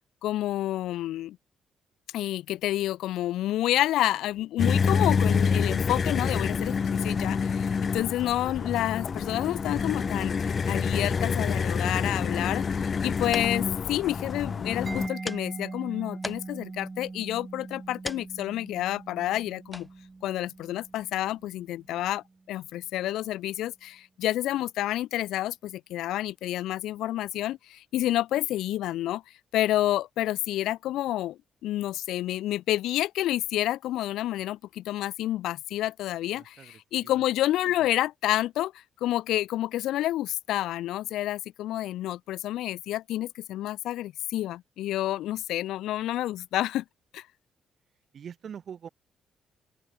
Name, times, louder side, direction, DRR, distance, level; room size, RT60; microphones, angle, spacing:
voice 1, 0.2-1.4 2.1-12.6 13.0-19.9 20.2-29.2 29.5-36.6 36.9-38.7 39.0-46.8 47.1-47.2, left 14 dB, 85° left, 0.6 m, -29 dB
sound 1, 4.6-15.1, left 5 dB, 40° left, 0.6 m, -27 dB
Mallet percussion, 14.9-22.4, right 3 dB, 25° right, 2.3 m, -42 dB
sound 2, 15.1-22.1, left 1 dB, 10° left, 4.8 m, -45 dB
voice 2, 36.3-37.9 48.1-48.9, right 8 dB, 55° right, 5.0 m, -46 dB
open air
cardioid pair, 90°, 0 cm